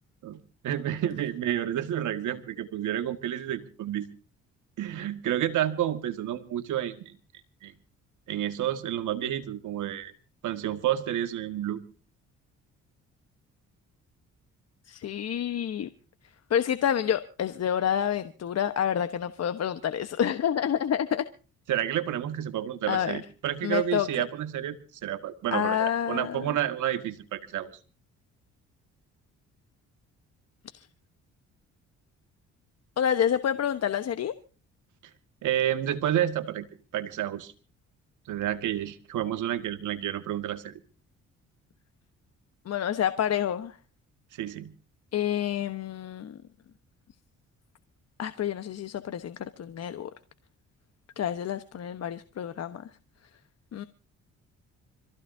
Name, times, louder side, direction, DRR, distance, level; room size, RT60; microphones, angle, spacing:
voice 1, 0.2-4.1 4.8-7.1 7.6-7.7 8.3-10.1 10.4-11.8 21.7-24.8 25.0-27.7 35.4-36.7 36.9-37.5 38.3-40.7 44.4-44.7, right 11 dB, 80° right, 1.8 m, -30 dB
voice 2, 14.9-15.9 16.5-21.3 22.9-23.2 23.6-24.1 25.5-26.6 30.7-30.9 33.0-34.3 42.6-43.8 45.1-46.4 48.2-50.1 51.2-52.9 53.7-53.8, left 9 dB, 55° left, 1.1 m, -28 dB
26.0 x 15.5 x 2.7 m
cardioid pair, 90°, 30 cm